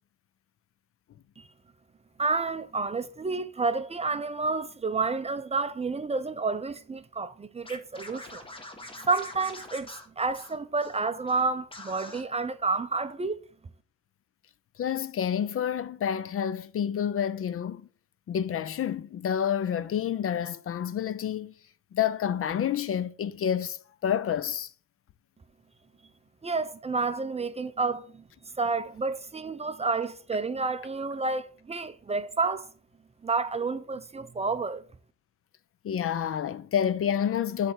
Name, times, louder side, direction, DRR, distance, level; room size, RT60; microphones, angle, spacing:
voice 1, 2.2-8.4 9.0-9.9 10.2-13.4 26.4-28.2 28.6-32.7 33.2-34.8, right 4 dB, 20° right, 0.5 m, -30 dB
Scratching (performance technique), 7.6-11.0 11.3-11.4 11.7-12.2, left 2 dB, 15° left, 1.3 m, -44 dB
voice 2, 14.8-17.9 18.3-21.5 21.9-24.7 35.8-37.7, left 9 dB, 50° left, 0.5 m, -29 dB
7.7 x 3.3 x 5.8 m
cardioid pair, 90°, 30 cm